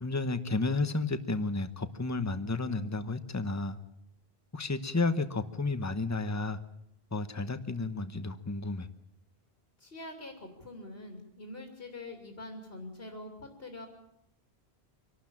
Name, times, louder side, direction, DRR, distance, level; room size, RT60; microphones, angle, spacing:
voice 1, 0.0-3.8 4.5-6.6 7.1-8.9, left 3 dB, 15° left, 11 dB, 1.0 m, -32 dB
voice 2, 9.8-13.9, left 2 dB, 75° left, 3 dB, 3.1 m, -44 dB
25.0 x 12.5 x 8.7 m, 0.77 s
omnidirectional pair, 1.0 m